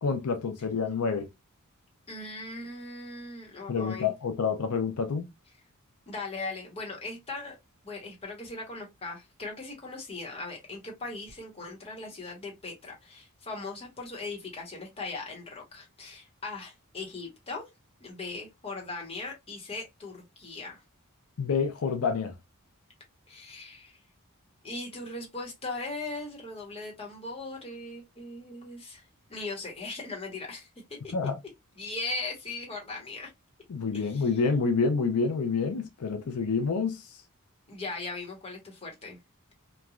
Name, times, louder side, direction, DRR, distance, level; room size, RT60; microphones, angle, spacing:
voice 1, 0.0-1.3 3.7-5.3 21.4-22.3 31.1-31.4 33.7-37.1, left 5 dB, 80° left, 0.5 m, -28 dB
voice 2, 2.1-4.1 6.1-7.6 7.8-17.7 18.0-20.8 23.3-24.0 24.6-29.0 29.3-30.7 31.0-31.1 31.8-33.3 33.9-34.3 37.7-39.2, left 3 dB, 25° left, 1.0 m, -39 dB
3.1 x 2.3 x 2.3 m
head